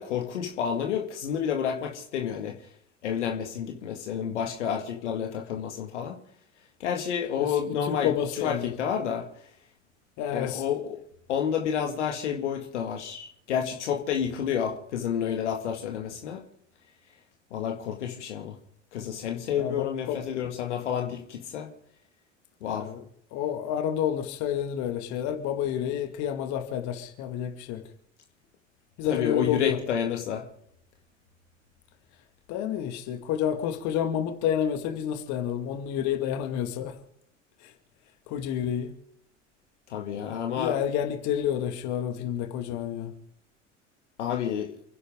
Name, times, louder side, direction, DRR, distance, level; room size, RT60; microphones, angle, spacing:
voice 1, 0.0-2.6 3.0-6.2 6.8-8.1 8.4-9.3 10.3-11.0 11.3-16.4 17.5-18.5 18.9-21.7 22.6-22.9 29.1-30.4 39.9-40.7 44.2-44.7, left 8 dB, 65° left, 2.1 m, -30 dB
voice 2, 7.8-8.7 10.2-10.6 19.6-20.2 22.7-27.8 29.0-29.8 32.5-36.9 37.6-37.7 38.3-38.9 40.6-43.1, left 9 dB, 50° left, 2.2 m, -29 dB
29.5 x 11.0 x 3.8 m
figure-of-eight pair, 75°, 37 cm